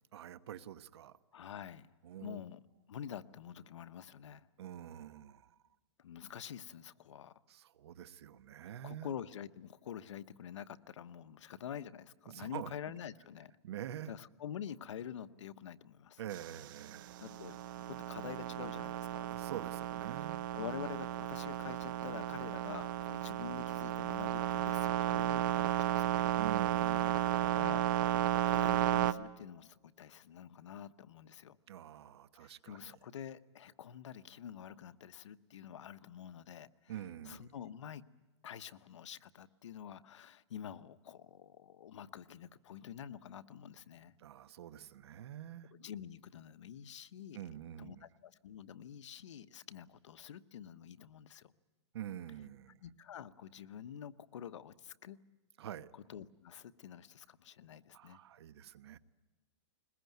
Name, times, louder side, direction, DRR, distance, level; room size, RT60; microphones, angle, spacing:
voice 1, 0.1-1.2 2.0-2.4 4.6-5.5 7.5-9.1 12.3-12.7 13.6-14.1 16.2-17.3 19.3-20.5 26.4-27.6 31.7-33.0 36.9-37.5 44.2-45.7 47.3-48.1 51.9-52.8 55.6-55.9 57.9-59.0, right 11 dB, 60° right, 15 dB, 1.1 m, -46 dB
voice 2, 1.3-1.9 2.2-2.6 2.9-4.5 6.0-7.3 8.8-13.5 14.1-16.2 17.2-17.6 17.8-19.2 20.3-26.2 27.4-27.9 28.4-31.6 32.4-36.9 37.3-38.0 38.4-44.1 45.8-47.4 47.8-51.5 52.8-55.2 55.9-58.2, left 9 dB, 85° left, 12 dB, 1.0 m, -47 dB
sound 1, 16.3-29.1, right 12 dB, 45° right, 0.8 m, -34 dB
21.5 x 21.0 x 9.4 m, 1.2 s
supercardioid pair, 165°, 15 cm